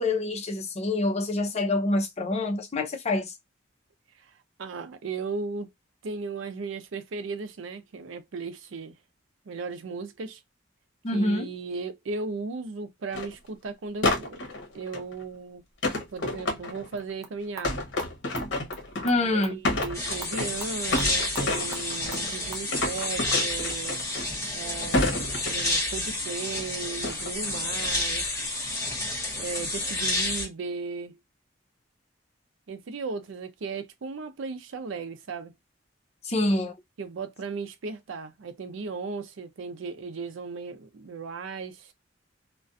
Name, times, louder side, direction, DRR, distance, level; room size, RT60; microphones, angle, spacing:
voice 1, 0.0-3.3 11.0-11.5 19.0-19.6 36.2-36.7, left 2 dB, 35° left, 0.5 m, -26 dB
voice 2, 4.6-5.7 6.0-9.0 9.5-10.4 11.1-14.5 14.7-15.6 16.1-17.9 19.2-24.0 24.5-28.4 29.4-31.2 32.7-35.5 37.0-41.9, right 4 dB, 80° right, 0.5 m, -36 dB
sound 1, 13.1-13.3 14.0-15.1 15.8-17.0 17.6-19.2 19.5-20.6 20.9-22.3 22.7-24.5 24.9-25.9 27.0-27.4 27.8-28.2, left 2 dB, 70° left, 0.9 m, -29 dB
sound 2, 17.0-22.7, right 3 dB, 15° right, 0.5 m, -46 dB
sound 3, 19.9-30.5, left 2 dB, 15° left, 1.0 m, -30 dB
2.4 x 2.2 x 2.5 m
head